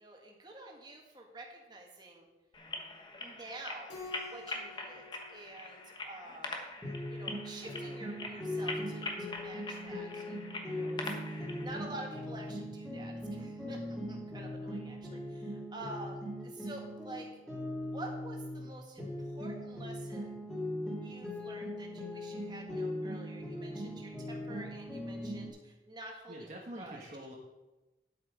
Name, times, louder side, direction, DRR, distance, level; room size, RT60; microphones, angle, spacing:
voice 1, 0.0-2.3 3.2-6.6 7.1-17.3 17.9-20.4 21.0-27.0, right 2 dB, 25° right, 0 dB, 1.7 m, -49 dB
sound 1, 2.5-11.7, left 2 dB, 25° left, 1.2 m, -43 dB
Keyboard (musical), 3.9-6.5, left 3 dB, 85° left, 3.1 m, -50 dB
sound 2, 6.8-18.7 19.0-25.5, left 1 dB, 5° left, 2.5 m, -40 dB
voice 2, 26.3-27.3, right 1 dB, 45° right, -2 dB, 1.4 m, -45 dB
10.0 x 8.3 x 5.0 m, 1.1 s
head